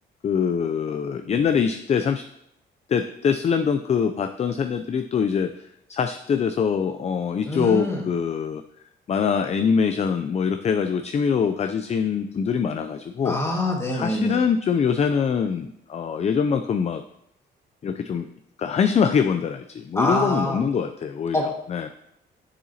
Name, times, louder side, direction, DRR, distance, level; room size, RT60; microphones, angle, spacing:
voice 1, 0.2-2.3 2.9-5.5 5.9-8.6 9.1-13.4 13.9-17.0 17.8-18.3 18.6-21.9, left 6 dB, 35° left, 8 dB, 0.4 m, -23 dB
voice 2, 7.4-8.1 13.2-14.4 20.0-20.6 21.3-21.5, left 1 dB, 15° left, -1 dB, 1.8 m, -25 dB
7.5 x 6.9 x 2.8 m, 0.78 s
cardioid pair, 90°, 20 cm